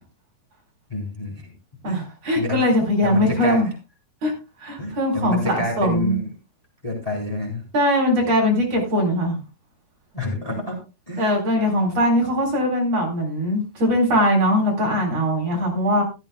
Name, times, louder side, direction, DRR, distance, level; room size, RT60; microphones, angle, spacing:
voice 1, 0.9-1.5 1.8-2.0 2.3-2.6 3.0-3.6 4.8-6.3 6.8-7.6 10.1-10.8 11.1-11.3, left 1 dB, 10° left, 0 dB, 3.4 m, -28 dB
voice 2, 1.8-3.7 4.2-4.3 4.6-6.2 7.7-9.4 11.2-16.0, equal, 50° right, 1 dB, 5.1 m, -21 dB
15.0 x 13.5 x 2.3 m, 0.28 s
omnidirectional pair, 3.9 m